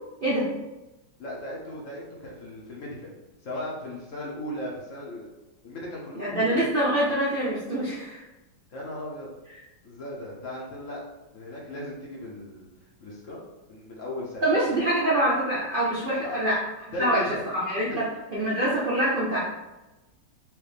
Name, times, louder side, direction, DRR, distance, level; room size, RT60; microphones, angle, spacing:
voice 1, 1.2-3.1 3.4-5.3 5.6-6.7 8.7-9.3 9.8-11.0 11.3-12.7 13.0-14.8 16.2-16.4 16.9-17.5 17.9-18.0, left 1 dB, 55° left, -4 dB, 0.9 m, -37 dB
voice 2, 6.2-8.2 14.4-16.6 17.0-17.2 17.5-19.4, right 1 dB, 90° right, -6 dB, 0.4 m, -25 dB
4.7 x 2.7 x 3.3 m, 1.0 s
omnidirectional pair, 2.1 m